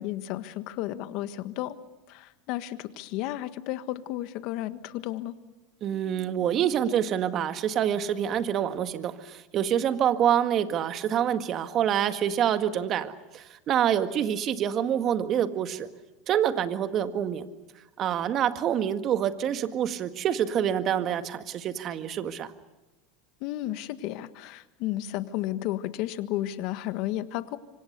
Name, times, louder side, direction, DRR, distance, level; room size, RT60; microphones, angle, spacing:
voice 1, 0.0-1.8 2.1-5.3 23.4-27.6, left 14 dB, 60° left, 11 dB, 1.5 m, -33 dB
voice 2, 5.8-15.9 16.3-17.5 18.0-22.5, right 9 dB, 40° right, 9 dB, 1.8 m, -26 dB
26.5 x 25.0 x 6.8 m, 1.1 s
supercardioid pair, 105°, 0 cm